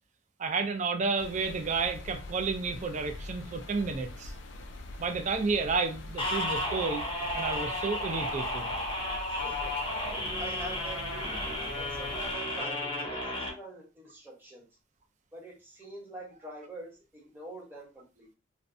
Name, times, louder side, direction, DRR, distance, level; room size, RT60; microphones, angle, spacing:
voice 1, 0.4-4.3 5.0-7.0 7.3-8.7, right 4 dB, 40° right, 0.4 m, -31 dB
sound 1, 1.2-12.4, left 2 dB, 65° left, 0.4 m, -44 dB
sound 2, 6.2-13.5, left 1 dB, 25° left, 0.6 m, -33 dB
voice 2, 9.3-11.3 11.7-14.6 15.3-18.4, right 1 dB, 10° right, 0.9 m, -45 dB
2.5 x 2.1 x 2.5 m
head